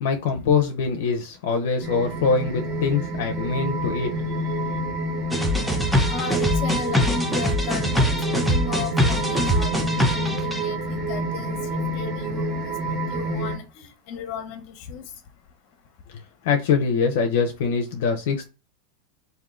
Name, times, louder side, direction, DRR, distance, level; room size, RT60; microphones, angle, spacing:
voice 1, 0.0-4.8 16.4-18.5, left 5 dB, 70° left, 0.7 m, -24 dB
sound 1, 1.8-13.6, right 1 dB, 25° right, 1.3 m, -28 dB
sound 2, 5.3-10.6, equal, ahead, 0.6 m, -23 dB
voice 2, 6.1-15.0, left 6 dB, 45° left, 1.0 m, -35 dB
3.6 x 2.7 x 3.6 m
supercardioid pair, 160°, 0 cm